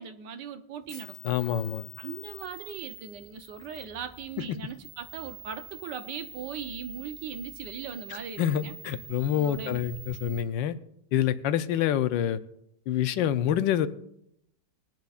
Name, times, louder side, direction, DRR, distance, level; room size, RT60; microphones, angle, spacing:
voice 1, 0.0-1.2 2.0-8.7 9.3-9.8, right 7 dB, 75° right, 9 dB, 1.5 m, -39 dB
sound 1, 0.8-10.4, right 2 dB, 15° right, 1.3 m, -47 dB
voice 2, 1.2-1.8 8.1-10.7 11.1-12.4 12.9-13.9, left 10 dB, 90° left, 12 dB, 1.4 m, -27 dB
20.5 x 10.5 x 2.4 m, 0.76 s
omnidirectional pair, 2.0 m